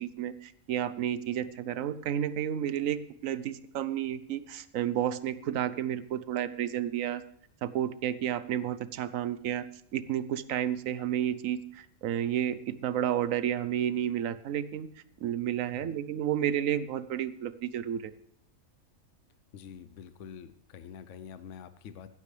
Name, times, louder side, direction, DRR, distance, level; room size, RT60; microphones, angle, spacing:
voice 1, 0.0-7.2 7.6-9.7 9.9-14.9 15.2-18.1, right 10 dB, 70° right, 14 dB, 1.1 m, -31 dB
voice 2, 19.5-22.2, left 8 dB, 65° left, 12 dB, 1.0 m, -46 dB
16.0 x 12.0 x 3.3 m, 0.69 s
omnidirectional pair, 1.5 m